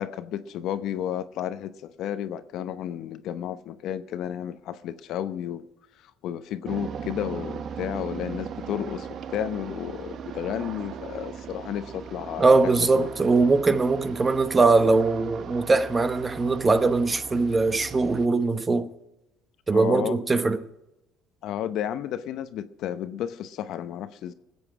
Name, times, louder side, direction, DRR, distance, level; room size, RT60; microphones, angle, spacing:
voice 1, 0.0-5.7 6.2-13.1 19.7-20.2 21.4-24.3, left 10 dB, 65° left, 0.8 m, -32 dB
sound 1, 6.7-18.3, right 7 dB, 50° right, 0.8 m, -38 dB
voice 2, 12.4-18.9 19.7-20.6, right 3 dB, 25° right, 0.9 m, -21 dB
20.0 x 8.1 x 4.8 m
supercardioid pair, 95°, 0 cm